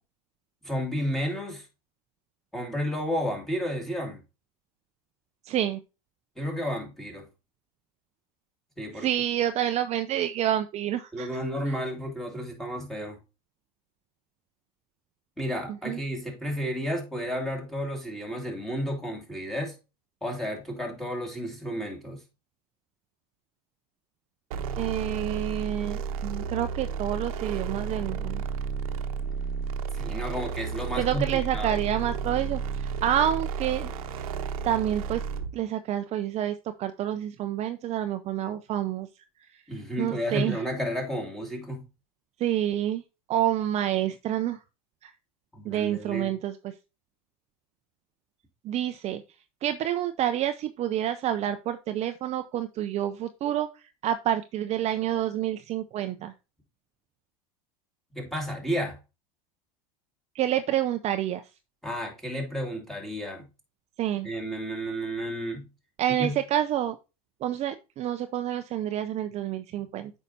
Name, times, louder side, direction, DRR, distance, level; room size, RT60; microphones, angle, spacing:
voice 1, 0.6-1.7 2.5-4.2 6.4-7.3 8.8-9.1 11.1-13.2 15.4-19.7 20.2-22.2 29.9-31.8 39.7-41.8 45.5-46.3 58.1-59.0 61.8-63.5 64.2-65.7 66.1-66.3, equal, ahead, 2.5 m, -32 dB
voice 2, 5.4-5.8 8.9-11.4 15.9-16.0 24.8-28.4 31.0-33.9 34.6-35.2 35.5-39.1 40.0-40.6 42.4-43.0 43.3-44.6 45.0-45.1 45.6-46.7 48.6-49.2 49.6-56.3 60.3-61.4 64.0-64.3 66.0-67.0 67.4-70.1, right 11 dB, 35° right, 0.5 m, -28 dB
sound 1, 24.5-35.6, right 6 dB, 70° right, 0.9 m, -32 dB
8.2 x 5.4 x 2.7 m
hypercardioid pair, 100°, 19 cm